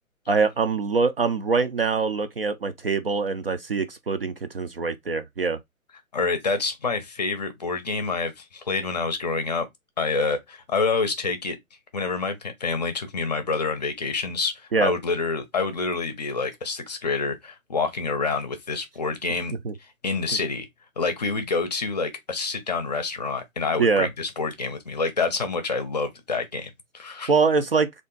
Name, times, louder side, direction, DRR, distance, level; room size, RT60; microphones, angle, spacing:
voice 1, 0.3-5.6 14.7-14.9 19.6-19.7 23.8-24.1 27.3-28.0, right 4 dB, 45° right, 0.4 m, -23 dB
voice 2, 6.1-9.7 10.0-11.6 11.9-19.5 20.0-20.7 21.0-27.3, left 4 dB, 30° left, 0.6 m, -27 dB
3.6 x 2.5 x 3.6 m
figure-of-eight pair, 140°, 43 cm